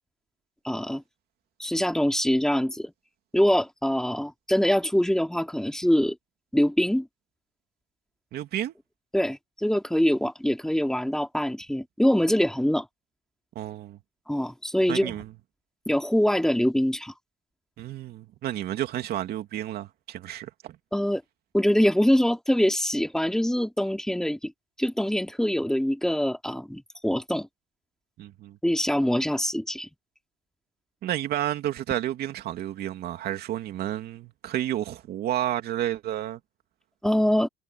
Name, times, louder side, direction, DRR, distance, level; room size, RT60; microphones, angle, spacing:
voice 1, 0.6-1.0 1.6-2.9 3.3-6.2 6.5-7.1 9.1-12.9 14.3-15.2 15.9-17.1 20.9-21.2 21.5-24.5 24.8-27.5 28.6-29.9 37.0-37.5, equal, 5° left, 2.6 m, -24 dB
voice 2, 8.3-8.7 13.5-14.0 14.9-15.3 17.8-20.8 28.2-28.6 31.0-36.4, right 12 dB, 70° right, 2.7 m, -31 dB
cardioid pair, 110°, 17 cm